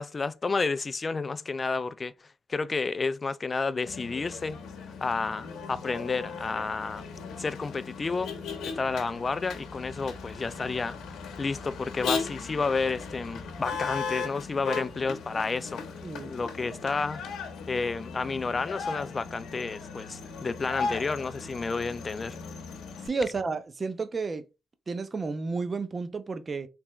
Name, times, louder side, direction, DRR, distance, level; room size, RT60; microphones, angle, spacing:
voice 1, 0.0-4.6 5.0-7.0 7.4-8.3 8.6-11.0 11.4-22.4, left 4 dB, 30° left, 0.3 m, -31 dB
Motor vehicle (road), 3.9-23.1, left 5 dB, 75° left, 0.8 m, -37 dB
voice 2, 16.0-16.3 23.0-24.5 24.9-26.7, right 4 dB, 30° right, 0.5 m, -31 dB
3.4 x 2.9 x 3.1 m
cardioid pair, 90°, 0 cm